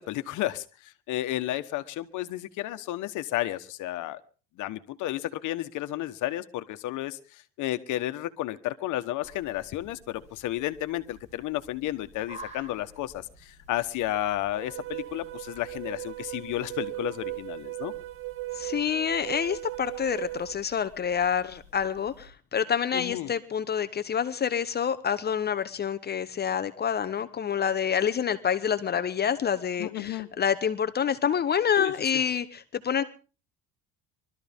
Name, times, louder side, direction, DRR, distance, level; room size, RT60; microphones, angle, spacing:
voice 1, 0.0-4.2 4.6-17.9 22.9-23.3 29.8-30.3 31.8-31.9, left 14 dB, 65° left, 11 dB, 1.4 m, -32 dB
sound 1, 9.2-22.3, right 1 dB, 20° right, 7.6 m, -53 dB
sound 2, 14.5-20.5, right 19 dB, 40° right, 0.7 m, -37 dB
voice 2, 18.5-33.0, left 8 dB, 30° left, 11 dB, 0.8 m, -27 dB
23.5 x 13.0 x 3.6 m, 0.36 s
cardioid pair, 135°, 33 cm